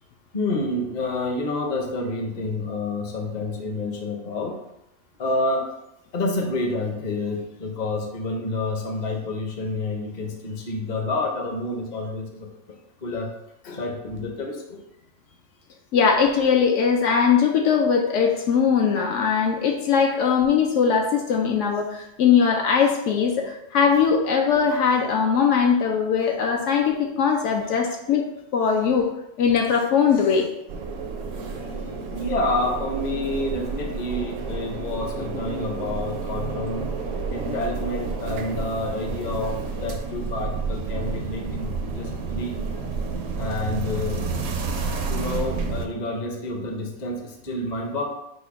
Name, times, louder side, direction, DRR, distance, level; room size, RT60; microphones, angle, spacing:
voice 1, 0.3-4.6 5.2-5.6 6.1-12.5 13.0-13.3 13.6-14.8 31.6-31.7 32.1-36.9 37.3-42.8 43.4-44.2 45.1-48.1, left 2 dB, 40° left, 1 dB, 0.7 m, -28 dB
voice 2, 15.9-28.2 28.5-29.1 29.4-30.5, left 6 dB, 75° left, 2 dB, 0.9 m, -20 dB
sound 1, 30.7-45.9, right 4 dB, 85° right, 1.0 m, -30 dB
5.2 x 2.2 x 4.7 m, 0.86 s
omnidirectional pair, 1.3 m